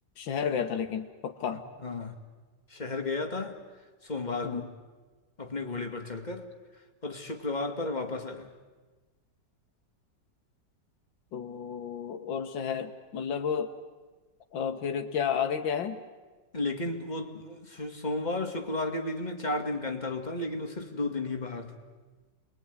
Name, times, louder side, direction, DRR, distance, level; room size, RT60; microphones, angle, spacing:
voice 1, 0.2-1.6 4.4-4.7 11.3-13.7 14.5-16.0, left 7 dB, 85° left, 1.9 m, -32 dB
voice 2, 1.8-2.1 2.7-3.6 4.0-4.6 5.4-8.5 16.5-21.8, left 2 dB, 25° left, 2.2 m, -33 dB
28.5 x 22.0 x 9.6 m
omnidirectional pair, 2.0 m